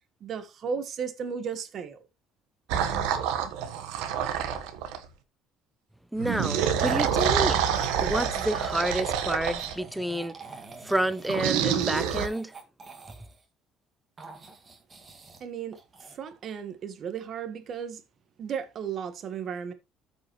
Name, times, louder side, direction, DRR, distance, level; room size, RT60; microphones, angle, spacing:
voice 1, 0.2-2.0 15.4-18.0 18.4-19.7, right 7 dB, 50° right, 1.5 m, -35 dB
sound 1, 2.7-5.0 6.2-9.8 11.3-12.3, right 8 dB, 90° right, 1.2 m, -27 dB
voice 2, 6.1-7.6 8.0-10.3 10.8-12.5, right 1 dB, 5° right, 0.7 m, -29 dB
sound 2, 6.8-7.3 7.7-13.4 14.2-15.5 15.7-16.1, right 3 dB, 30° right, 1.9 m, -47 dB
14.0 x 5.4 x 3.1 m
cardioid pair, 115°, 0 cm